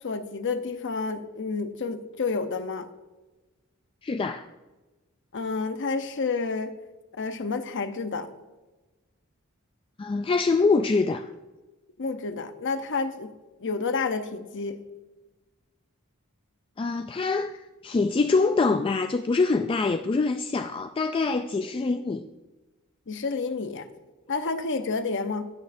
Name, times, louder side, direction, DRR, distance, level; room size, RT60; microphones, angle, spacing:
voice 1, 0.0-2.9 5.3-6.7 7.2-8.3 12.0-13.3 13.6-14.8 23.1-23.9 24.3-25.5, left 4 dB, 60° left, 9 dB, 0.8 m, -29 dB
voice 2, 4.0-4.5 10.0-11.3 16.8-22.3, left 3 dB, 25° left, 8 dB, 0.3 m, -25 dB
18.0 x 6.4 x 2.6 m, 1.2 s
head